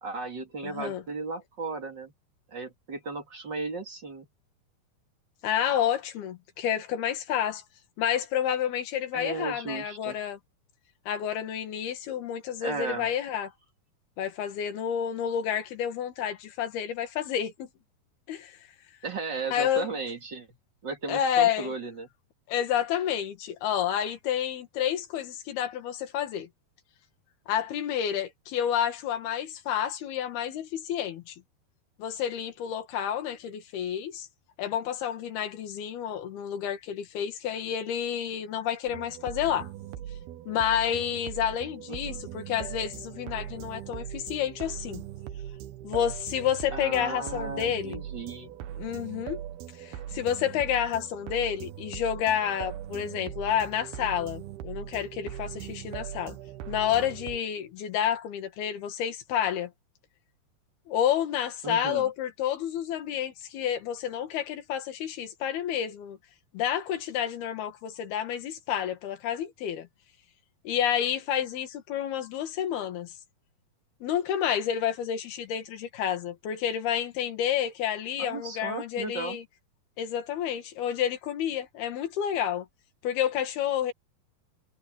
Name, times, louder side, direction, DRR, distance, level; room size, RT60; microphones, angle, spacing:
voice 1, 0.0-2.1 2.5-4.3 9.1-10.2 12.6-13.1 19.0-20.5 20.8-22.1 41.9-42.2 46.7-48.5 61.6-62.1 78.2-79.4, right 4 dB, 35° right, 2.5 m, -35 dB
voice 2, 0.6-1.0 5.4-7.6 8.0-10.4 11.1-13.5 14.2-17.7 18.3-18.6 19.5-19.9 21.1-21.7 22.5-26.5 27.5-31.4 32.0-34.3 34.6-39.7 40.5-45.0 45.8-48.0 48.8-49.4 49.8-56.4 56.7-59.7 60.9-66.2 66.5-69.9 70.7-73.1 74.0-79.4 80.0-82.7 83.0-83.9, left 9 dB, 80° left, 3.9 m, -29 dB
sound 1, 38.9-57.4, right 11 dB, 80° right, 3.0 m, -40 dB
omnidirectional pair, 4.4 m